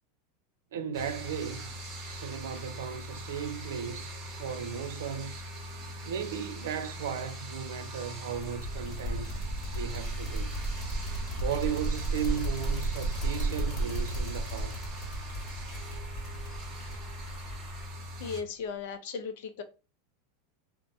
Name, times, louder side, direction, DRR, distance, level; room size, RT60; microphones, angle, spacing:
voice 1, 0.7-1.7 2.1-5.5 6.0-9.3 9.7-10.6 11.4-14.8, right 8 dB, 85° right, 0.4 m, -36 dB
sound 1, 0.9-18.4, equal, 30° right, 0.8 m, -42 dB
sound 2, 8.3-17.6, right 2 dB, 40° left, 1.1 m, -34 dB
sound 3, 10.0-17.9, equal, ahead, 1.0 m, -45 dB
voice 2, 18.2-19.6, left 5 dB, 65° left, 0.5 m, -36 dB
2.7 x 2.1 x 2.5 m
supercardioid pair, 150°, 0 cm